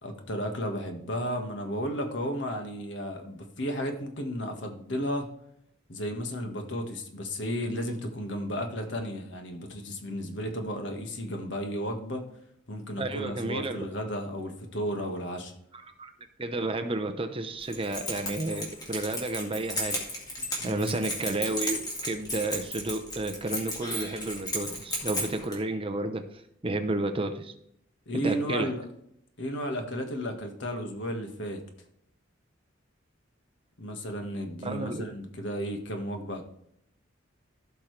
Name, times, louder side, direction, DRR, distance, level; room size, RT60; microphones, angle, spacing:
voice 1, 0.0-5.3 5.9-12.3 12.7-15.5 20.6-21.0 28.1-28.9 29.4-31.6 33.8-36.4, equal, 65° left, 4 dB, 1.6 m, -33 dB
voice 2, 13.0-13.8 15.7-16.1 16.4-20.0 20.6-26.3 26.6-27.5 28.1-28.7 34.6-35.1, right 2 dB, 30° right, 7 dB, 0.8 m, -31 dB
Keys jangling, 17.6-25.6, equal, 20° left, 2.3 m, -34 dB
15.5 x 5.9 x 3.3 m, 0.73 s
head